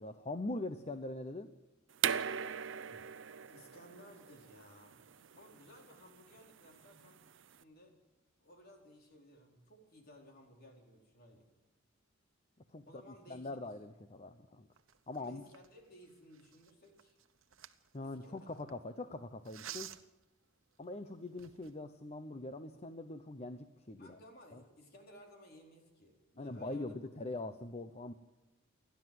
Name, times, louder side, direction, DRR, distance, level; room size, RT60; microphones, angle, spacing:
voice 1, 0.0-1.5 12.7-12.8 13.3-14.7 15.1-15.4 17.9-19.9 20.8-24.2 24.5-24.6 26.4-28.1, left 2 dB, 35° left, 9 dB, 0.8 m, -42 dB
sound 1, 2.0-7.6, right 8 dB, 65° right, 0.7 m, -40 dB
voice 2, 3.4-5.1 5.3-7.2 7.5-8.0 8.4-11.5 12.8-13.5 15.2-17.2 18.0-18.6 24.0-27.0, equal, 50° left, 1 dB, 4.5 m, -58 dB
sound 2, 14.8-18.7 19.4-20.2 20.8-20.9 21.3-21.8, right 11 dB, 85° right, 1.1 m, -51 dB
29.0 x 11.5 x 7.9 m, 1.1 s
head